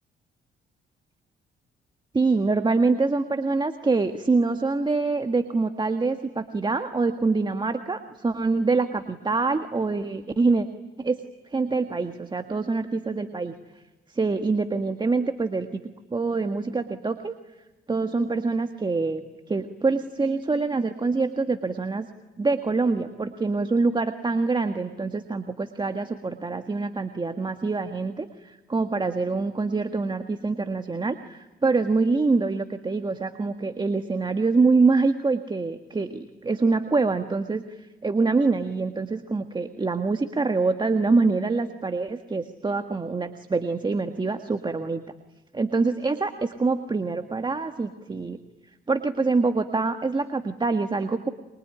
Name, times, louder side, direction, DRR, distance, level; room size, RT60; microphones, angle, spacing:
voice 1, 2.1-10.7 11.0-11.2 11.5-13.5 14.1-15.8 16.1-17.3 17.9-19.2 19.5-22.1 22.4-45.0 45.5-48.4 48.9-51.3, right 3 dB, 25° right, 7 dB, 1.6 m, -25 dB
25.5 x 24.0 x 10.0 m, 1.1 s
cardioid pair, 90°, 20 cm